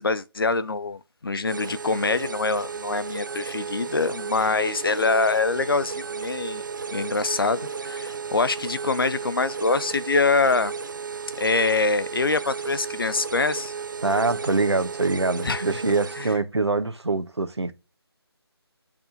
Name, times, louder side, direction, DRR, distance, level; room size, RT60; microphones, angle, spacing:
voice 1, 0.0-6.6 6.9-10.7 11.4-13.7 15.4-15.8 16.2-16.4, left 3 dB, 55° left, 0.7 m, -24 dB
sound 1, 1.4-16.4, right 5 dB, 50° right, 0.5 m, -34 dB
voice 2, 14.0-17.7, right 3 dB, 80° right, 1.1 m, -24 dB
7.8 x 3.6 x 3.9 m
figure-of-eight pair, 160°, 14 cm